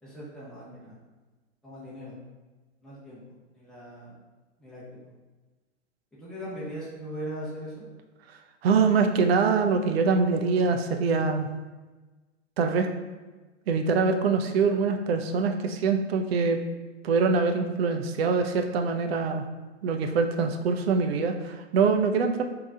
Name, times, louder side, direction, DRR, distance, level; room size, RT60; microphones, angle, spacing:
voice 1, 0.0-0.9 1.6-2.1 2.8-3.2 3.5-4.1 4.6-4.8 6.2-7.8, equal, ahead, -9 dB, 1.1 m, -39 dB
voice 2, 8.6-11.5 12.6-12.9 13.7-16.6 17.0-19.4 19.8-22.4, right 4 dB, 55° right, 6 dB, 0.6 m, -24 dB
3.8 x 2.9 x 3.6 m, 1.2 s
hypercardioid pair, 120°, 37 cm